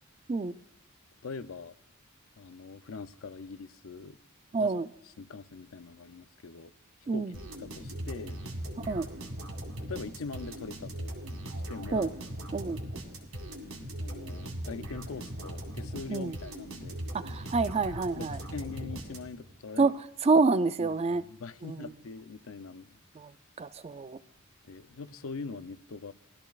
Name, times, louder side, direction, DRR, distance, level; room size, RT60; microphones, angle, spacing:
voice 1, 1.2-1.7 2.4-4.2 4.6-4.8 5.2-6.7 7.1-7.3 7.6-8.4 9.9-11.1 11.7-12.1 14.0-17.0 18.2-19.9 20.8-23.0 24.6-26.1, left 4 dB, 75° left, 0.6 m, -42 dB
voice 2, 4.5-4.9 7.1-7.3 8.9-9.1 11.9-12.1 12.5-12.8 16.1-16.4 17.1-18.4 19.8-19.9 20.2-21.2 21.6-21.9 23.2-23.3 23.6-24.2, right 4 dB, 30° right, 0.4 m, -27 dB
sound 1, 7.3-19.5, right 1 dB, 80° right, 2.1 m, -39 dB
20.0 x 13.0 x 2.4 m
head